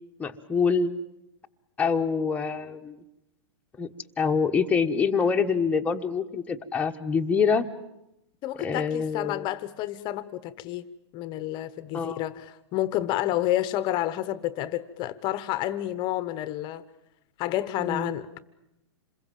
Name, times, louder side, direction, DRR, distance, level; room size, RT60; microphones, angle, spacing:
voice 1, 0.2-0.9 1.8-3.0 3.8-3.9 4.2-7.7 8.6-9.5 11.9-12.2 17.8-18.1, left 5 dB, 10° left, 1.2 m, -25 dB
voice 2, 8.4-10.8 11.1-16.8 17.4-18.4, left 14 dB, 30° left, 1.0 m, -30 dB
27.5 x 22.0 x 7.6 m
hypercardioid pair, 140°, 15 cm